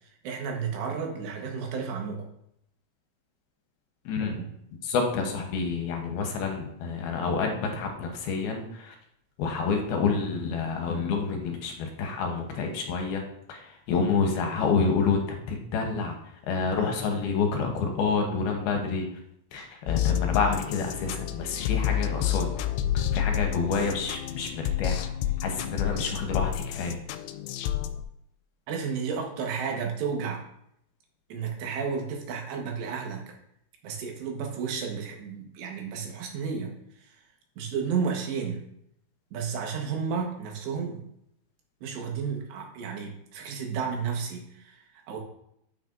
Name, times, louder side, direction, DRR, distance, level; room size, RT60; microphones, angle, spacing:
voice 1, 0.0-2.3 4.4-4.5 28.7-30.4 31.3-33.2 33.8-36.7 37.0-37.2 37.6-38.6 39.3-41.0 41.8-45.2, right 6 dB, 90° right, 1 dB, 3.6 m, -32 dB
voice 2, 4.1-4.4 4.8-8.9 9.4-13.2 13.5-15.2 15.5-16.2 16.5-19.1 19.5-22.5 23.1-25.1 25.4-27.0, left 4 dB, 75° left, 3 dB, 2.8 m, -28 dB
sound 1, 19.9-28.0, left 11 dB, 90° left, 2.7 m, -29 dB
9.5 x 8.3 x 2.6 m, 0.74 s
omnidirectional pair, 4.8 m